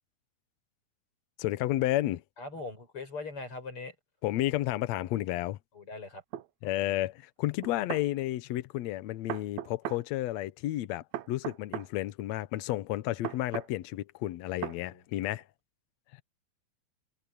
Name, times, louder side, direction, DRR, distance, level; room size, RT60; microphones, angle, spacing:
voice 1, 1.4-2.2 4.2-5.6 6.6-15.4, left 15 dB, 85° left, 1.5 m, -31 dB
voice 2, 2.4-3.9 5.7-6.2 14.6-15.0, left 3 dB, 35° left, 7.9 m, -41 dB
sound 1, 6.3-6.5 7.6-8.1 9.3-10.0 11.1-11.9 13.2-13.7 14.6-14.8, right 12 dB, 70° right, 1.8 m, -37 dB
omnidirectional pair, 4.2 m